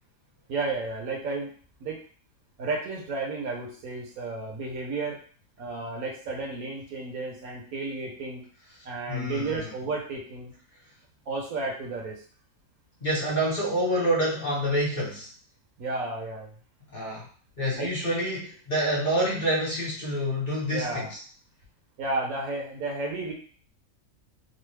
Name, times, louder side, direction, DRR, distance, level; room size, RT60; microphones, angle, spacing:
voice 1, 0.5-1.5 1.8-2.0 2.6-5.2 5.6-8.4 8.8-10.5 11.3-12.2 15.8-16.5 17.7-17.9 20.7-21.1 22.0-23.3, right 3 dB, 75° right, -1 dB, 1.3 m, -32 dB
voice 2, 9.1-9.7 13.0-15.3 16.9-17.3 17.6-21.1, equal, 35° left, -6 dB, 1.1 m, -27 dB
3.2 x 2.1 x 3.2 m, 0.42 s
omnidirectional pair, 1.6 m